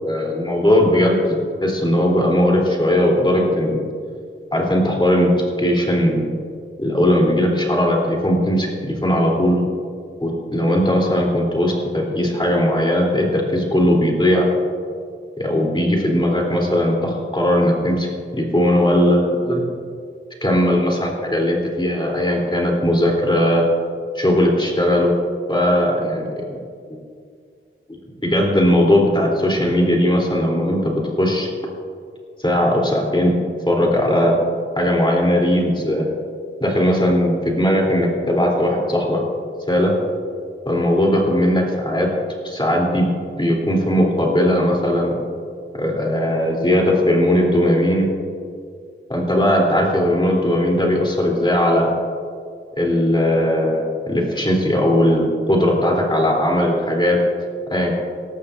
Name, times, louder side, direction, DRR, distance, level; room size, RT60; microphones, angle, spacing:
voice 1, 0.0-1.2 1.6-3.8 4.5-5.3 5.6-6.3 6.8-9.6 10.2-14.5 15.4-18.1 18.3-19.2 19.5-19.7 20.4-23.6 24.1-25.1 25.5-26.2 28.2-31.5 32.4-33.3 33.7-34.4 34.7-36.1 36.6-39.2 39.7-39.9 40.6-42.1 42.4-43.1 43.4-45.2 45.7-48.1 49.1-51.9 52.8-57.2 57.7-58.0, left 1 dB, 20° left, -1 dB, 3.2 m, -18 dB
18.5 x 13.5 x 2.6 m, 2.2 s
wide cardioid pair, 60°, 21 cm